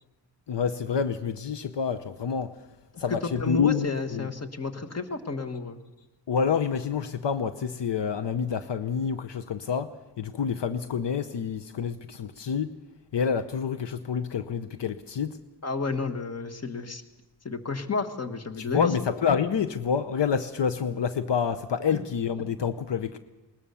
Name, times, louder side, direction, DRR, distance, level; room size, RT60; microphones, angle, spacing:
voice 1, 0.5-2.6 3.0-4.3 6.3-12.8 13.1-15.4 18.6-23.2, left 6 dB, 75° left, 10 dB, 0.8 m, -28 dB
voice 2, 3.1-5.8 15.6-17.0 17.4-18.9 21.9-22.0, left 4 dB, 35° left, 6 dB, 1.4 m, -31 dB
20.0 x 19.5 x 7.0 m, 1.0 s
wide cardioid pair, 135°, 42 cm